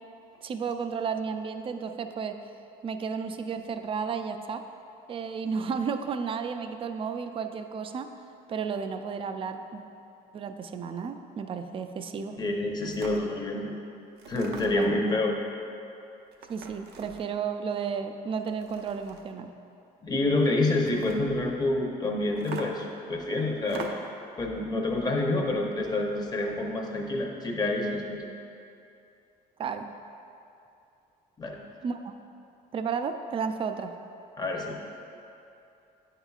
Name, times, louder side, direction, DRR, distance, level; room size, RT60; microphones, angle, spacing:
voice 1, 0.4-2.4 2.8-4.6 5.1-8.1 8.5-9.8 10.3-12.4 14.7-14.9 16.5-19.5 29.6-29.9 31.8-32.1 32.7-33.9, right 6 dB, 30° right, 7 dB, 0.4 m, -33 dB
voice 2, 12.4-13.8 14.3-15.3 20.0-23.9 24.4-28.2 31.4-31.6 34.4-34.7, left 2 dB, 25° left, 0 dB, 0.8 m, -28 dB
sound 1, 12.4-12.5 12.8-13.2 14.1-14.9 16.3-17.3 18.4-19.3 20.7-21.2 22.4-22.9 23.6-24.2, right 4 dB, 75° right, 0.7 m, -42 dB
8.8 x 5.5 x 2.4 m, 2.7 s
cardioid pair, 110°, 17 cm